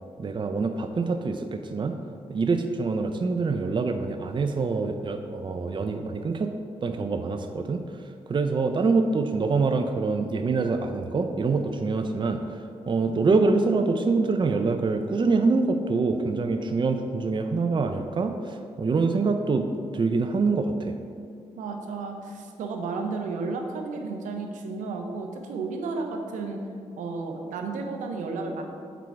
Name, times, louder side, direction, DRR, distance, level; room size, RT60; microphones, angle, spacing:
voice 1, 0.2-2.0 2.3-6.5 6.8-7.8 8.3-12.4 12.9-19.7 19.9-21.0, right 4 dB, 40° right, 6 dB, 0.5 m, -25 dB
voice 2, 21.6-26.6 27.0-28.6, right 4 dB, 85° right, 4 dB, 0.7 m, -32 dB
5.9 x 4.6 x 4.7 m, 2.3 s
supercardioid pair, 45°, 13 cm